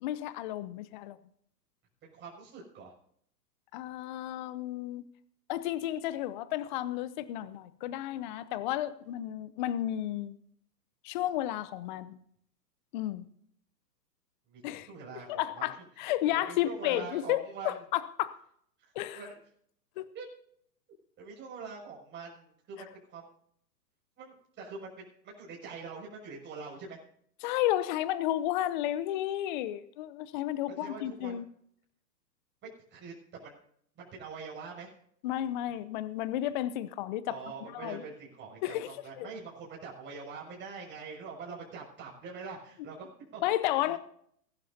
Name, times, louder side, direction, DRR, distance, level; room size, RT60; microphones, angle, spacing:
voice 1, 0.0-1.2 3.7-5.0 5.5-10.3 11.0-12.2 12.9-13.3 14.6-14.9 15.3-18.3 19.0-19.2 20.0-20.1 27.4-31.5 35.2-37.4 37.7-38.0 38.6-38.9 39.2-39.3 43.4-44.0, left 13 dB, 30° left, 0.6 m, -32 dB
voice 2, 2.0-2.9 14.5-15.7 16.3-17.7 18.8-19.4 20.1-20.3 21.2-22.9 23.1-23.3 24.2-27.0 30.8-31.3 32.9-33.6 34.0-34.9 37.3-43.4 43.8-43.9, right 5 dB, 20° right, 6.2 m, -44 dB
21.0 x 11.5 x 2.8 m
hypercardioid pair, 120°, 50 cm